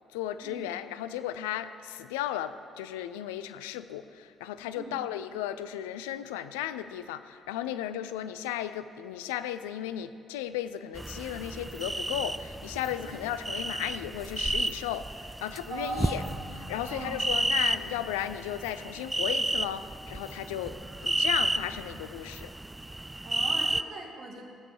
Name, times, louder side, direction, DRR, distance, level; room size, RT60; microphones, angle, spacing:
voice 1, 0.1-16.2 16.7-22.5, left 11 dB, 75° left, 12 dB, 0.4 m, -35 dB
sound 1, 10.9-23.8, right 2 dB, 15° right, 0.4 m, -32 dB
voice 2, 15.7-16.3 16.9-17.2 23.2-24.4, right 3 dB, 60° right, 1 dB, 1.6 m, -39 dB
Bass guitar, 16.1-20.1, left 2 dB, 40° left, 2.0 m, -49 dB
16.0 x 7.4 x 4.6 m, 2.4 s
figure-of-eight pair, 45°, 0 cm